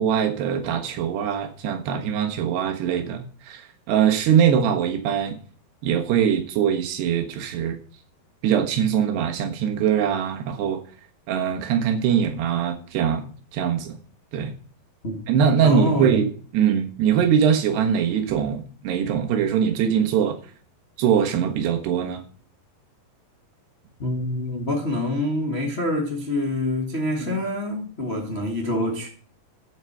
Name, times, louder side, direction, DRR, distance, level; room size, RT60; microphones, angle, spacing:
voice 1, 0.0-3.6 3.9-5.4 5.8-7.8 8.4-10.8 11.3-13.3 13.5-14.0 14.3-14.5 15.3-20.4 21.0-22.2 27.2-27.4, right 8 dB, 80° right, 3.4 m, -22 dB
voice 2, 15.6-16.1 24.0-29.1, left 1 dB, 60° left, 0.6 m, -26 dB
9.0 x 8.1 x 6.8 m
omnidirectional pair, 4.8 m